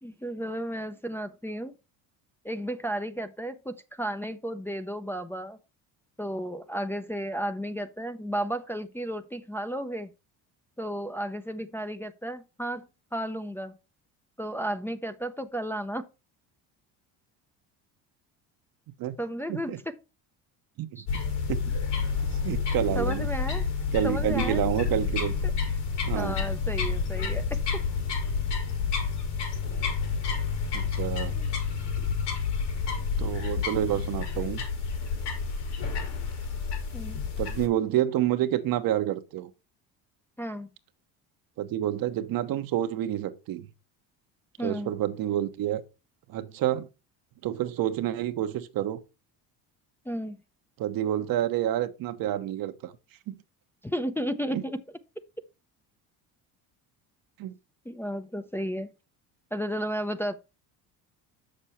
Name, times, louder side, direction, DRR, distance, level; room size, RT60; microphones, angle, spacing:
voice 1, 0.0-1.7 2.4-5.6 6.2-10.1 10.8-13.7 14.4-16.1 19.2-19.9 21.0-21.1 23.0-23.6 24.0-24.6 25.4-25.5 26.1-27.8 31.4-31.5 36.9-37.2 40.4-40.7 44.6-44.9 50.1-50.4 53.8-54.8 57.9-58.9 59.5-60.4, equal, 5° left, 0.6 m, -33 dB
sound 1, 21.1-37.7, left 5 dB, 80° left, 4.3 m, -29 dB
voice 2, 22.2-23.3 23.9-25.3 26.0-26.5 30.7-31.3 33.2-34.6 37.4-39.5 41.6-43.7 44.6-45.8 46.3-46.9 47.4-49.0 50.8-52.9 53.3-53.4 54.5-54.6 57.4-57.5, right 12 dB, 60° right, 1.0 m, -28 dB
6.6 x 6.4 x 4.3 m
cardioid pair, 105°, 40 cm